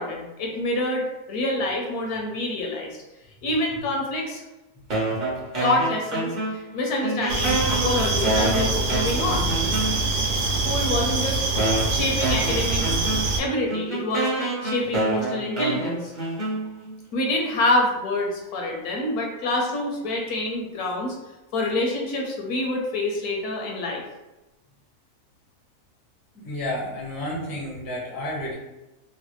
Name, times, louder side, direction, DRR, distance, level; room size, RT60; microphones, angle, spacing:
voice 1, 0.0-2.9 3.4-4.4 5.6-6.3 6.7-9.5 10.5-11.4 11.9-12.9 13.4-16.1 16.4-16.5 17.1-21.1 21.5-24.0, left 1 dB, 75° left, 0 dB, 1.2 m, -26 dB
sound 1, 4.9-6.7 7.0-10.3 11.0-11.1 11.6-17.0, right 2 dB, 35° right, 0.9 m, -28 dB
sound 2, 7.3-13.4, right 3 dB, 65° right, 0.9 m, -24 dB
voice 2, 26.3-28.5, left 1 dB, 20° left, -5 dB, 0.6 m, -31 dB
3.1 x 2.2 x 3.0 m, 1.0 s
omnidirectional pair, 1.6 m